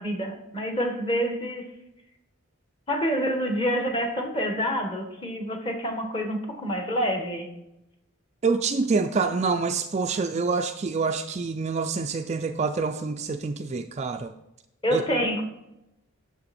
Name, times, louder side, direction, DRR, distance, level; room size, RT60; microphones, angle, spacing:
voice 1, 0.0-1.7 2.9-7.5 14.8-15.4, equal, 25° left, 3 dB, 1.4 m, -27 dB
voice 2, 8.4-14.3 14.9-15.0, right 4 dB, 30° right, 7 dB, 0.4 m, -26 dB
9.6 x 6.8 x 4.2 m, 0.89 s
head